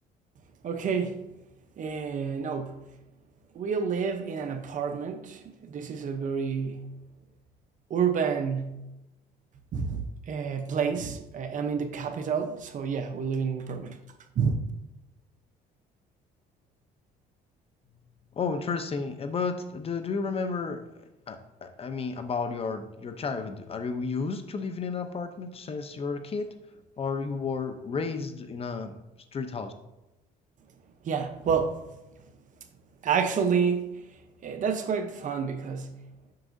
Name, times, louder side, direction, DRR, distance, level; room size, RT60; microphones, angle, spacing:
voice 1, 0.6-1.2 1.8-2.8 3.5-6.9 7.9-8.8 9.7-14.0 14.4-14.6 31.0-31.8 33.0-33.9 34.4-36.0, right 6 dB, 50° right, 0.8 m, -29 dB
voice 2, 18.3-20.8 21.3-26.5 27.0-29.0 29.3-29.7, left 5 dB, 35° left, 0.7 m, -32 dB
7.7 x 6.0 x 2.7 m
cardioid pair, 110°, 17 cm